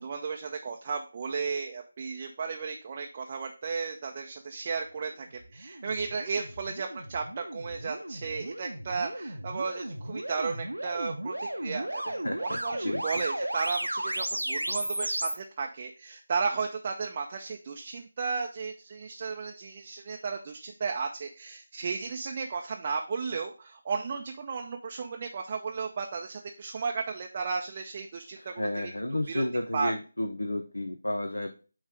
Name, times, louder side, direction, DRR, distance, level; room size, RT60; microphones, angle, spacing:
voice 1, 0.0-28.9 29.3-29.4 29.7-29.9, right 5 dB, 30° right, 2 dB, 0.6 m, -34 dB
sound 1, 5.3-15.3, right 1 dB, 85° right, 0.9 m, -35 dB
voice 2, 12.1-13.2 28.4-31.5, left 1 dB, 70° left, 6 dB, 0.7 m, -32 dB
8.9 x 3.1 x 4.9 m, 0.37 s
figure-of-eight pair, 160°, 0 cm